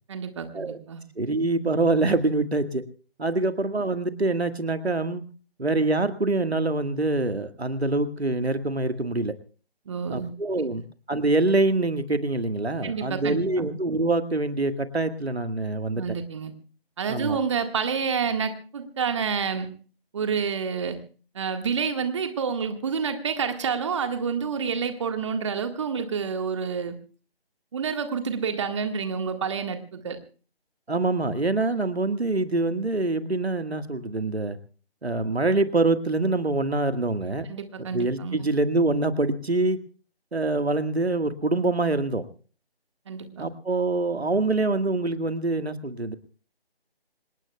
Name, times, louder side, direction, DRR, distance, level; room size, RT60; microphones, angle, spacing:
voice 1, 0.1-1.0 9.8-10.6 12.8-13.7 15.9-16.5 17.0-19.7 20.1-21.0 21.3-27.0 27.7-30.2 37.5-38.4 43.1-43.5, right 6 dB, 30° right, 7 dB, 1.7 m, -29 dB
voice 2, 1.2-2.8 3.2-5.2 5.6-9.3 10.1-10.8 11.1-16.0 17.1-17.4 30.9-34.6 35.0-37.5 37.9-39.8 40.3-42.2 43.4-46.2, right 2 dB, 80° right, 10 dB, 1.8 m, -25 dB
27.0 x 18.5 x 2.3 m, 0.39 s
figure-of-eight pair, 155°, 31 cm